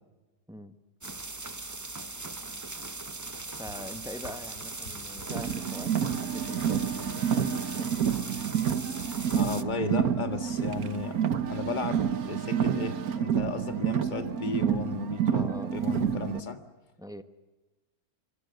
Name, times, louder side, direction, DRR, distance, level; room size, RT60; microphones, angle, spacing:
sound 1, 1.0-9.6, right 2 dB, 20° right, 0.6 m, -40 dB
Run, 3.4-12.8, equal, 55° left, 3.5 m, -50 dB
voice 1, 3.6-7.9 15.3-15.8 17.0-17.2, left 1 dB, 5° right, 9 dB, 1.2 m, -43 dB
Car, 5.3-16.4, right 8 dB, 75° right, 1.6 m, -29 dB
voice 2, 9.3-16.6, left 4 dB, 30° left, 8 dB, 1.8 m, -35 dB
28.0 x 23.5 x 6.8 m, 1.1 s
omnidirectional pair, 1.6 m